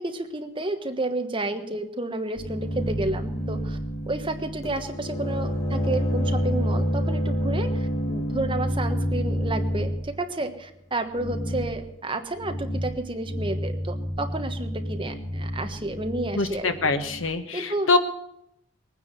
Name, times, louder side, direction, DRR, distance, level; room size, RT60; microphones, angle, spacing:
voice 1, 0.0-3.8 4.1-16.9 17.5-17.9, right 2 dB, 25° right, 6 dB, 1.3 m, -31 dB
sound 1, 2.4-10.0 11.1-11.7 12.3-13.0 13.2-17.2, equal, 20° left, 2.5 m, -28 dB
voice 2, 16.4-18.0, left 3 dB, 75° left, 8 dB, 1.4 m, -24 dB
20.5 x 9.7 x 6.7 m, 0.77 s
head